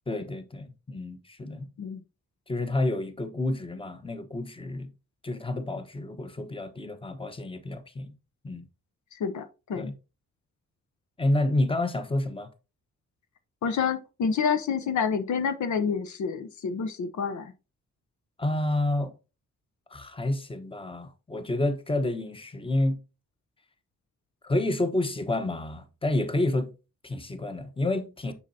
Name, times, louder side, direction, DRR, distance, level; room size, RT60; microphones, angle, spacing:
voice 1, 0.1-1.7 2.5-4.9 5.2-8.1 8.4-8.7 9.8-9.9 11.2-12.5 18.4-19.1 19.9-23.0 24.4-26.7 27.0-28.3, left 1 dB, 20° left, 1.0 m, -29 dB
voice 2, 9.1-9.9 13.6-17.5, left 6 dB, 75° left, 0.8 m, -28 dB
7.2 x 5.5 x 2.7 m
cardioid pair, 70°, 29 cm